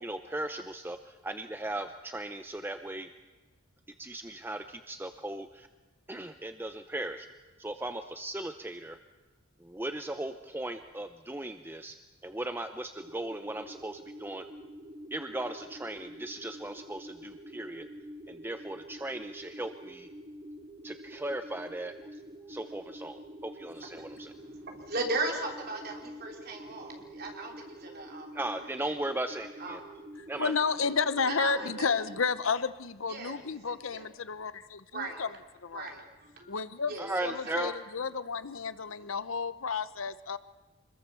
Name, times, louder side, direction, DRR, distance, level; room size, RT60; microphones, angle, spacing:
voice 1, 0.0-3.1 4.0-5.7 6.1-7.3 7.6-9.0 9.6-12.0 12.2-14.5 15.1-17.9 18.3-20.1 20.8-22.2 22.5-24.3 28.3-29.8 30.3-30.5 37.0-37.8, right 1 dB, 10° right, 8 dB, 0.7 m, -37 dB
sound 1, 12.9-32.2, right 1 dB, 25° right, 1.6 m, -47 dB
voice 2, 24.0-28.4 28.8-28.9 29.6-29.8 31.3-32.1 33.1-33.4 33.7-34.1 34.9-35.2 35.7-36.6 36.9-37.6, right 2 dB, 50° right, 1 dB, 3.8 m, -37 dB
voice 3, 30.4-35.3 35.6-35.9 36.5-36.9 37.2-40.4, left 5 dB, 75° left, 14 dB, 0.9 m, -31 dB
25.5 x 21.5 x 7.0 m, 1.2 s
head